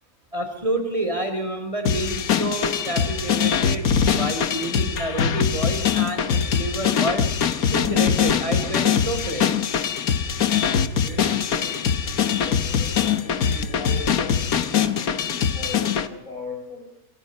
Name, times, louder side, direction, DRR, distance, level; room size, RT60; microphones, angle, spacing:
voice 1, 0.3-3.9 4.1-7.3 7.7-9.7, right 1 dB, 20° right, 6 dB, 4.2 m, -29 dB
sound 1, 1.9-16.1, left 7 dB, 75° left, 1.6 m, -22 dB
voice 2, 10.7-16.9, left 3 dB, 60° left, -1 dB, 6.2 m, -39 dB
27.5 x 25.5 x 5.5 m, 0.80 s
omnidirectional pair, 1.5 m